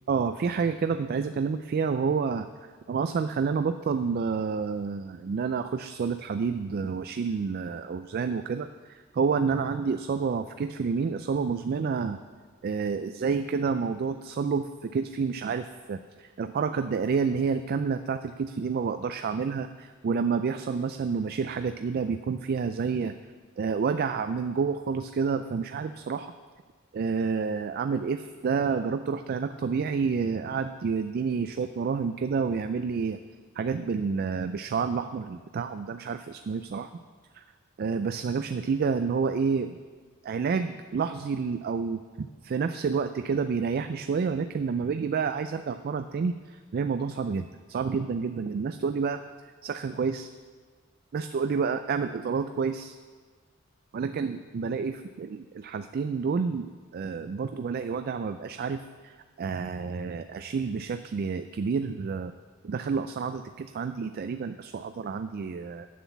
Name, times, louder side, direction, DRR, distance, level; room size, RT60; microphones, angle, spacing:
voice 1, 0.1-2.5 2.9-12.2 12.6-23.1 23.6-26.3 26.9-33.2 33.6-36.9 37.3-37.4 37.8-39.8 40.2-49.2 49.6-50.3 51.1-53.0 53.9-62.3 62.6-65.9, right 5 dB, 45° right, 9 dB, 0.3 m, -29 dB
9.2 x 7.2 x 7.0 m, 1.5 s
head